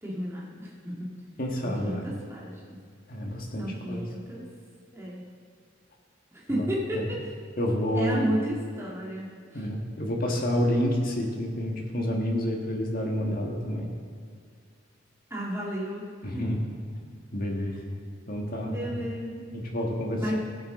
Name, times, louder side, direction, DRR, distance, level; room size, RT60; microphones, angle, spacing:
voice 1, 0.0-1.1 1.6-2.8 3.6-4.5 4.9-5.2 6.3-7.3 7.9-9.7 15.3-16.5 17.6-17.8 18.6-19.5 20.2-20.4, equal, 15° right, -6 dB, 1.9 m, -33 dB
voice 2, 1.4-2.1 3.1-4.0 6.5-6.6 7.0-7.1 7.6-8.3 9.5-13.9 16.2-16.6 17.3-18.0 18.3-18.8 19.5-20.4, equal, 45° left, 0 dB, 1.7 m, -29 dB
15.5 x 9.5 x 3.8 m, 2.1 s
head